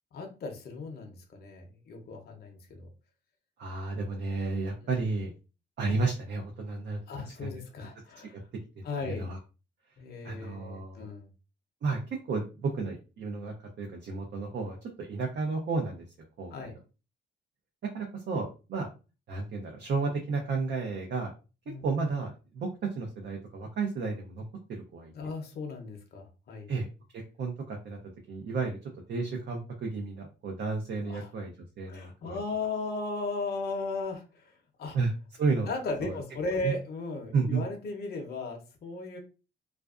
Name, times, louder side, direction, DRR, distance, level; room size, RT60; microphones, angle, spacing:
voice 1, 0.1-2.9 4.8-5.0 7.1-8.3 8.8-9.3 10.0-11.3 16.5-16.7 21.7-21.8 25.1-26.7 31.1-31.3 31.9-35.0 35.7-39.2, left 3 dB, 55° left, 2 dB, 0.7 m, -36 dB
voice 2, 3.6-5.3 5.8-7.0 7.4-7.5 8.3-8.4 9.0-9.4 10.2-11.1 11.8-16.0 16.4-16.7 17.9-18.9 19.3-21.3 21.8-24.4 24.7-25.1 26.7-26.9 27.1-28.0 28.3-32.4 34.9-35.1 35.4-35.7 36.0-36.2 36.6-36.7 37.3-37.6, right 4 dB, 60° right, 1 dB, 0.6 m, -32 dB
2.4 x 2.2 x 2.4 m, 0.32 s
cardioid pair, 90°, 20 cm